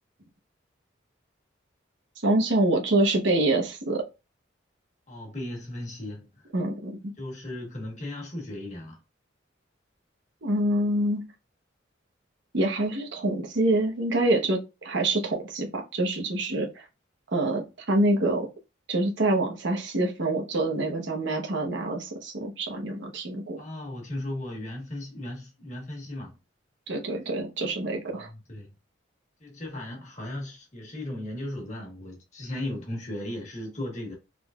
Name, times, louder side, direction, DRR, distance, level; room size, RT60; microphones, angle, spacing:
voice 1, 2.2-4.0 6.5-7.1 10.4-11.2 12.5-16.8 17.3-18.5 18.9-23.6 26.9-28.3, right 1 dB, 65° right, 1.0 m, -26 dB
voice 2, 5.1-6.3 7.2-9.0 23.6-26.4 28.1-28.7 29.4-34.1, left 1 dB, 35° left, 1.3 m, -36 dB
3.8 x 3.2 x 2.4 m
head